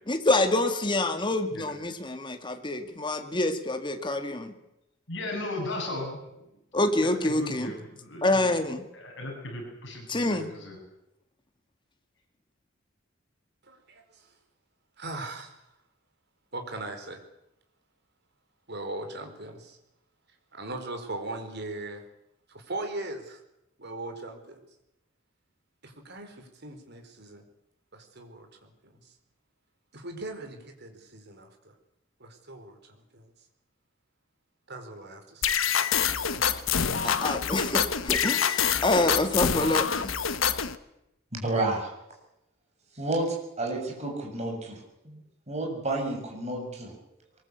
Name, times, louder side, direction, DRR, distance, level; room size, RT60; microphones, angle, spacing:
voice 1, 0.1-4.5 6.7-7.7 8.2-8.8 10.1-10.5 37.0-39.9, left 2 dB, 25° left, 6 dB, 2.2 m, -26 dB
voice 2, 5.1-8.5 8.9-10.8, left 1 dB, 65° left, 2 dB, 7.9 m, -37 dB
voice 3, 13.7-14.3 15.0-15.6 16.5-17.2 18.7-19.8 20.5-22.0 22.5-23.4 23.8-24.6 25.8-27.4 27.9-29.0 29.9-31.7 32.2-33.3 34.7-35.9 36.3-37.2, right 2 dB, 55° right, 5 dB, 4.6 m, -40 dB
sound 1, 35.4-40.7, left 7 dB, 90° left, 1.4 m, -26 dB
voice 4, 41.3-41.9 43.0-44.8 45.0-45.2 45.5-46.9, right 2 dB, 35° right, 0 dB, 7.1 m, -30 dB
22.5 x 21.0 x 8.4 m, 0.86 s
head